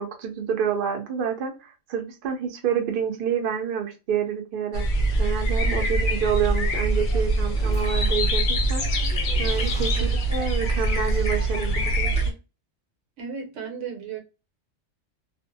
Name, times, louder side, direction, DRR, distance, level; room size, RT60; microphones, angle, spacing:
voice 1, 0.0-4.8 5.2-9.0 9.4-12.3, right 8 dB, 55° right, 0.7 m, -28 dB
sound 1, 4.7-12.3, right 1 dB, 55° left, 0.6 m, -23 dB
voice 2, 5.6-6.1 9.9-10.1 13.2-14.2, right 6 dB, 90° right, 1.2 m, -35 dB
Typing, 7.5-12.3, left 1 dB, 10° left, 0.4 m, -41 dB
2.5 x 2.1 x 2.5 m
omnidirectional pair, 1.2 m